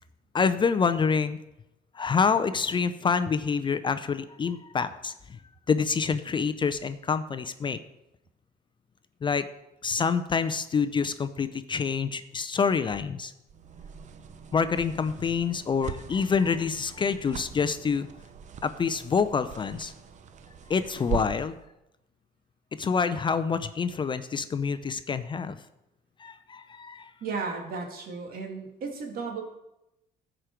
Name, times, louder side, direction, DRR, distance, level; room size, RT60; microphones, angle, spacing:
voice 1, 0.3-1.4 1.9-5.4 5.7-7.8 9.2-9.5 9.8-13.3 14.5-18.1 18.6-19.9 20.7-21.6 22.8-25.6 26.2-27.1, left 5 dB, 30° left, 11 dB, 0.5 m, -27 dB
sound 1, 13.5-21.6, right 7 dB, 45° right, 0.7 m, -41 dB
voice 2, 27.2-29.4, right 4 dB, 60° right, 2 dB, 2.2 m, -34 dB
15.0 x 5.1 x 4.5 m, 0.90 s
cardioid pair, 110°, 17 cm